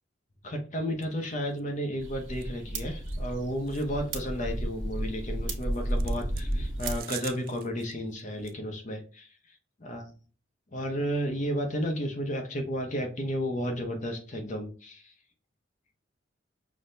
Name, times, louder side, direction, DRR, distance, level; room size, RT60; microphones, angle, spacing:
voice 1, 0.4-9.3 9.8-10.1 10.7-15.1, equal, 40° left, 3 dB, 0.7 m, -32 dB
sound 1, 1.0-1.2 1.6-1.7 2.3-2.5 3.0-3.2 3.7-3.9 4.1-4.3 5.6-7.9 8.2-8.5, right 12 dB, 50° right, 0.3 m, -44 dB
sound 2, 2.0-7.0, right 1 dB, 85° right, 1.2 m, -32 dB
6.1 x 2.1 x 2.6 m, 0.37 s
head